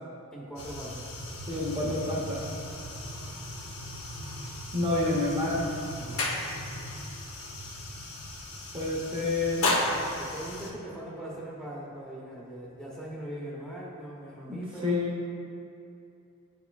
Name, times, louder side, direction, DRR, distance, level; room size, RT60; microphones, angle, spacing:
voice 1, 0.3-1.1 6.0-6.3 10.2-15.0, right 1 dB, 5° left, -5 dB, 0.9 m, -41 dB
sound 1, 0.6-10.7, left 2 dB, 75° left, 1.0 m, -35 dB
voice 2, 1.5-2.4 4.4-5.6 8.7-9.7 14.5-15.1, left 2 dB, 25° right, -5 dB, 0.8 m, -29 dB
9.8 x 4.6 x 2.3 m, 2.6 s
head